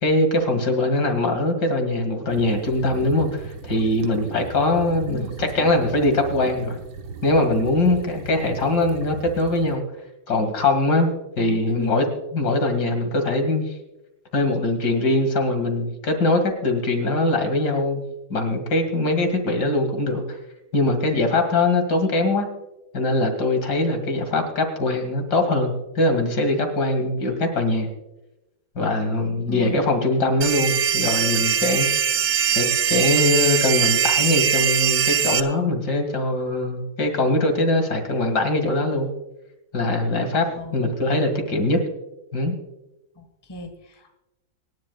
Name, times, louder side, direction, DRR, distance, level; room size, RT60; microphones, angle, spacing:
voice 1, 0.0-6.8 7.2-9.8 10.3-11.1 11.4-12.1 12.3-13.7 14.3-18.0 18.3-20.4 20.7-22.5 22.9-27.9 28.8-31.9 32.5-39.1 39.7-40.5 40.7-41.8 42.3-42.5, left 2 dB, 60° left, 5 dB, 2.5 m, -22 dB
sound 1, 2.3-9.8, right 4 dB, 80° right, 1.9 m, -37 dB
voice 2, 5.0-5.7 11.4-12.1 29.5-29.8 40.5-41.0 43.1-44.1, left 2 dB, 15° left, 5 dB, 1.4 m, -37 dB
sound 2, 30.4-35.4, right 8 dB, 60° right, 1.2 m, -21 dB
26.0 x 11.0 x 2.3 m, 0.94 s
omnidirectional pair, 2.0 m